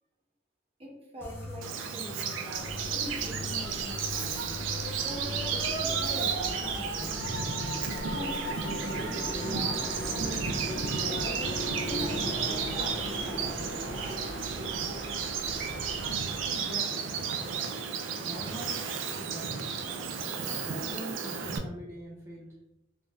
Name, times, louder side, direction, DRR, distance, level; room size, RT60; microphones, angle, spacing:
voice 1, 0.8-4.5 5.0-7.1 7.8-8.5 8.8-13.7, equal, 30° right, -3 dB, 0.8 m, -43 dB
sound 1, 1.2-11.8, left 2 dB, 15° left, 0.7 m, -44 dB
Bird vocalization bird call bird song, 1.6-21.6, right 6 dB, 90° right, 0.4 m, -33 dB
sound 2, 2.5-16.4, equal, 80° left, 1.2 m, -37 dB
voice 2, 16.5-17.1 18.1-18.8 19.1-19.7 20.5-22.5, right 1 dB, 15° right, -4 dB, 0.3 m, -43 dB
3.4 x 2.6 x 2.2 m, 0.93 s
head